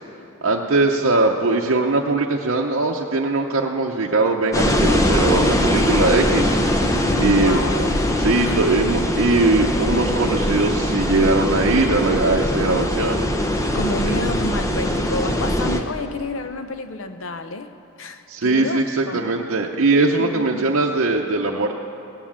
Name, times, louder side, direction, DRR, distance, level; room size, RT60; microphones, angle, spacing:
voice 1, 0.4-6.6 7.2-7.6 8.2-13.2 14.1-14.2 18.3-21.8, right 3 dB, 60° right, -2 dB, 0.7 m, -20 dB
sound 1, 4.5-15.8, left 1 dB, 15° left, 0.7 m, -21 dB
voice 2, 7.1-8.0 8.4-8.7 13.7-17.7 18.0-19.3 20.2-20.8, left 2 dB, 65° left, 9 dB, 0.7 m, -29 dB
17.5 x 9.5 x 7.3 m, 2.7 s
head